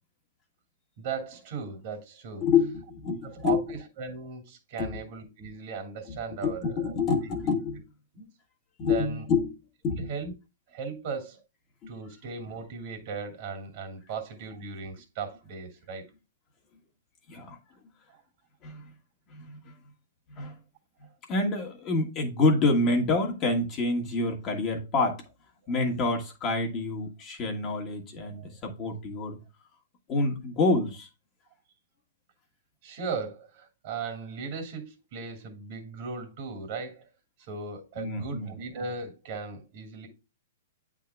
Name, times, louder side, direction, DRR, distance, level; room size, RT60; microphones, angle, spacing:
voice 1, 1.0-2.4 3.3-6.9 7.3-7.5 8.1-8.3 8.8-9.3 10.0-10.3 10.7-11.4 11.9-16.1 18.1-18.2 25.6-25.7 28.4-28.6 32.8-37.1 37.4-40.1, right 5 dB, 50° right, 2.3 m, -37 dB
voice 2, 2.4-3.6 4.8-5.0 6.1-7.8 8.8-9.6 9.8-10.1 11.8-12.0 17.3-17.6 18.6-18.9 19.3-19.7 20.3-20.6 21.3-25.2 25.7-29.4 30.1-31.1 38.0-38.5, left 3 dB, 30° left, 1.5 m, -27 dB
8.4 x 3.7 x 3.4 m
hypercardioid pair, 140°, 0 cm